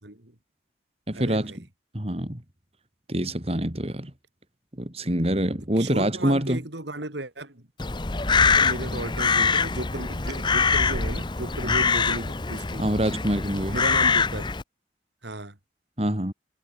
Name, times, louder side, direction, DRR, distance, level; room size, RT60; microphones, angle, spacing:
voice 1, 0.0-0.4 1.1-1.6 5.8-7.7 8.2-12.8 13.7-14.5 15.2-15.6, right 1 dB, 75° right, 3.7 m, -35 dB
voice 2, 1.1-1.5 1.9-2.4 3.1-4.1 4.8-6.6 12.8-13.8 16.0-16.3, right 1 dB, 35° right, 3.0 m, -25 dB
Crow, 7.8-14.6, left 5 dB, 25° left, 0.8 m, -24 dB
head